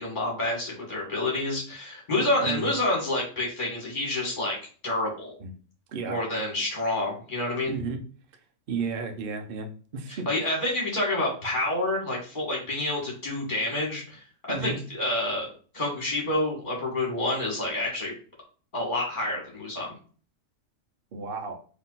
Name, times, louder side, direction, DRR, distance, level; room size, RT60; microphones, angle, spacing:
voice 1, 0.0-4.6 4.8-5.3 6.1-7.8 10.1-15.5 15.7-18.1 18.7-19.9, left 2 dB, 30° left, -2 dB, 2.1 m, -28 dB
voice 2, 2.4-2.8 5.4-5.5 5.9-6.2 7.7-8.0 8.7-10.3 14.5-14.8 21.1-21.6, right 4 dB, 50° right, 5 dB, 0.7 m, -33 dB
4.0 x 3.1 x 4.0 m, 0.41 s
omnidirectional pair, 1.6 m